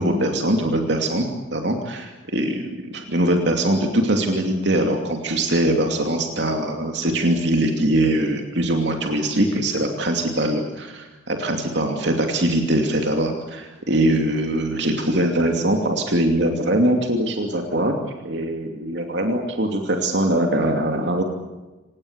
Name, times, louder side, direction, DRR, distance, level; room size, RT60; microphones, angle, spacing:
voice 1, 0.0-21.2, right 1 dB, 65° right, 3 dB, 2.7 m, -22 dB
27.5 x 18.5 x 8.2 m, 1.2 s
head